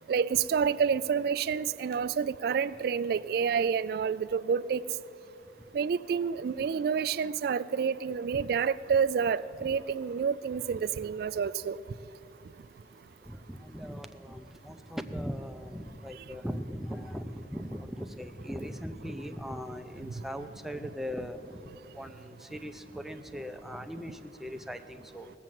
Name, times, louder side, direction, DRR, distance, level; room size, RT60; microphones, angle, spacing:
voice 1, 0.1-4.8 5.7-11.8, right 6 dB, 60° right, 16 dB, 0.3 m, -28 dB
voice 2, 13.3-21.4 21.9-25.3, equal, ahead, 7 dB, 0.5 m, -39 dB
18.5 x 7.5 x 7.6 m, 2.7 s
head